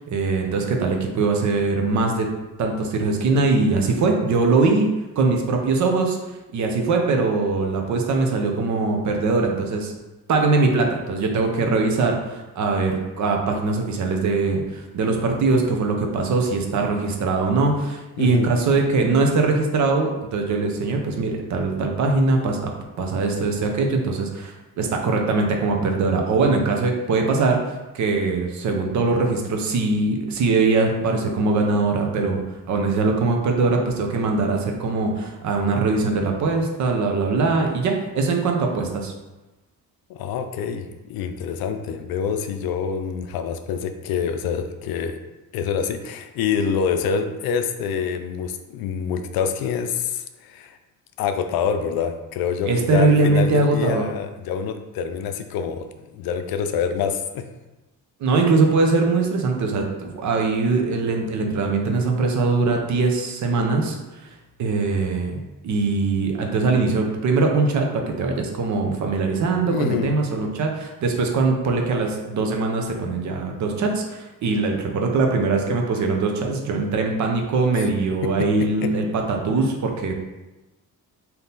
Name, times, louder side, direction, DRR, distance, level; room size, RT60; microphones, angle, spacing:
voice 1, 0.0-2.3 2.6-6.2 6.5-9.9 10.3-32.4 32.7-39.1 52.7-54.1 58.2-64.0 64.2-64.3 64.6-80.1, right 3 dB, 50° right, 2 dB, 0.6 m, -22 dB
voice 2, 18.2-18.5 40.1-45.2 45.5-50.8 51.2-55.9 56.1-57.5 69.7-70.1 77.7-77.8 78.2-78.5 78.8-78.9, left 7 dB, 75° left, 7 dB, 0.5 m, -26 dB
3.6 x 2.8 x 3.9 m, 1.1 s
cardioid pair, 170°, 36 cm